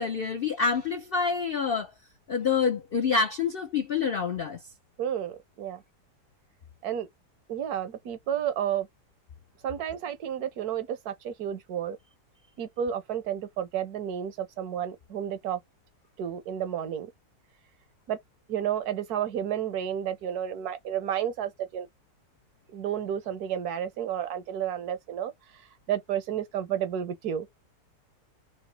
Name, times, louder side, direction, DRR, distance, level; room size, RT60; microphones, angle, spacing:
voice 1, 0.0-1.9 2.3-4.6, left 5 dB, 65° left, 0.5 m, -27 dB
voice 2, 5.0-5.8 6.8-7.1 7.5-8.9 9.6-12.0 12.6-15.6 16.2-17.1 18.1-18.2 18.5-21.9 22.7-25.3 25.9-27.5, right 9 dB, 75° right, 1.3 m, -31 dB
4.0 x 2.8 x 4.6 m
omnidirectional pair, 1.7 m